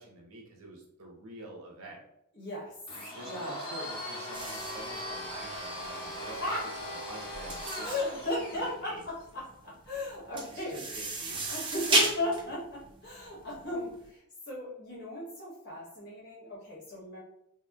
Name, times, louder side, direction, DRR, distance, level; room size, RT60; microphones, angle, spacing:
voice 1, 0.0-2.0 3.2-6.5 6.8-8.0 8.5-9.0 10.5-11.7, right 2 dB, 85° right, -1 dB, 0.7 m, -47 dB
voice 2, 2.3-2.7 3.2-3.6 6.2-6.7 7.8-10.8 11.5-17.2, left 1 dB, 50° left, -5 dB, 1.1 m, -36 dB
Domestic sounds home sounds, 2.9-8.8, equal, 25° left, 0.9 m, -39 dB
sound 1, 4.3-13.9, right 2 dB, 25° right, 0.4 m, -34 dB
2.9 x 2.1 x 2.2 m, 0.76 s
head